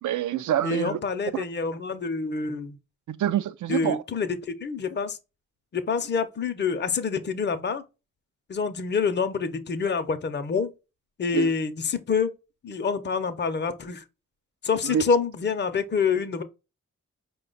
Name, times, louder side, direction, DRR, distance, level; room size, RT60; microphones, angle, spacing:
voice 1, 0.0-1.0 1.3-1.4 3.1-4.0 11.3-11.5 14.8-15.0, right 10 dB, 80° right, 0.5 m, -26 dB
voice 2, 0.6-2.8 3.7-4.4 4.6-5.2 5.7-7.8 8.5-10.7 11.2-12.3 12.6-14.0 14.6-16.4, left 5 dB, 35° left, 0.6 m, -27 dB
4.8 x 2.3 x 3.8 m
cardioid pair, 60°, 30 cm